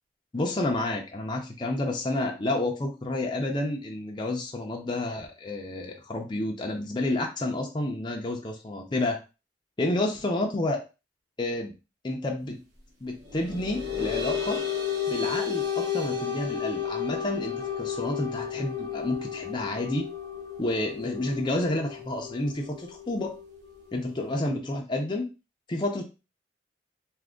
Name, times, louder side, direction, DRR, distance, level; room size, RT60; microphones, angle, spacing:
voice 1, 0.3-9.2 9.8-10.8 11.4-11.7 12.0-12.6 13.0-14.6 15.1-20.1 20.6-23.3 23.9-25.3 25.7-26.0, left 2 dB, 25° left, 1 dB, 0.5 m, -30 dB
sound 1, 13.3-24.3, left 8 dB, 80° right, 1.2 m, -33 dB
2.6 x 2.5 x 3.5 m, 0.29 s
head